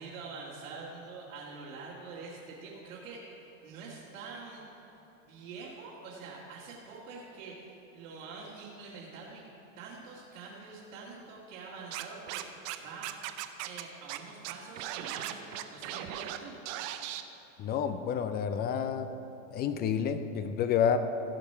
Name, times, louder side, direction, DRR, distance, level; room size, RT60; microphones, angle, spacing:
voice 1, 0.0-4.6 5.2-9.4 9.8-13.1 13.6-16.5, right 4 dB, 85° right, -6 dB, 2.1 m, -45 dB
Scratching (performance technique), 11.9-12.8 13.0-13.8 14.1-14.2 14.4-16.4 16.7-17.2, right 14 dB, 55° right, 0.7 m, -37 dB
voice 2, 17.6-19.1 19.5-21.0, left 8 dB, 25° left, 10 dB, 0.3 m, -29 dB
15.5 x 5.3 x 5.5 m, 3.0 s
supercardioid pair, 120°, 39 cm